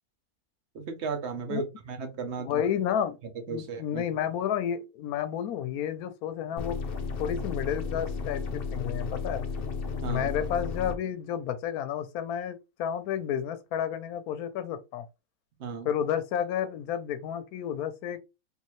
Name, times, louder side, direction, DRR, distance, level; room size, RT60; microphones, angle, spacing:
voice 1, 0.7-2.6 3.5-4.0 10.0-10.3 15.6-15.9, right 4 dB, 55° right, 1.0 m, -35 dB
voice 2, 2.4-3.2 3.5-6.8 7.2-9.4 10.1-15.1 15.8-18.2, left 9 dB, 85° left, 1.1 m, -31 dB
sound 1, 6.6-11.0, left 4 dB, 55° left, 0.6 m, -33 dB
3.3 x 2.7 x 3.0 m
omnidirectional pair, 1.5 m